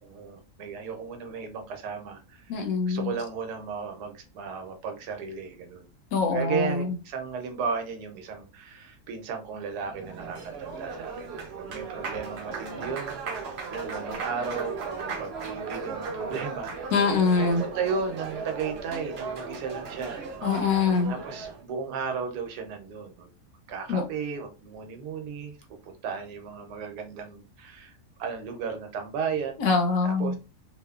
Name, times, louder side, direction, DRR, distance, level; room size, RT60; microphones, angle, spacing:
voice 1, 0.0-5.9 6.3-11.3 11.6-13.4 13.7-20.2 21.1-23.3 23.7-25.5 25.8-29.6 30.0-30.4, right 6 dB, 85° right, 5 dB, 1.2 m, -35 dB
voice 2, 2.5-3.1 6.1-6.9 16.9-17.6 20.4-21.1 23.9-24.0 29.6-30.4, left 4 dB, 70° left, 3 dB, 1.0 m, -24 dB
Applause, 9.8-21.6, right 4 dB, 55° right, 0.8 m, -36 dB
3.0 x 2.1 x 2.3 m, 0.31 s
omnidirectional pair, 1.7 m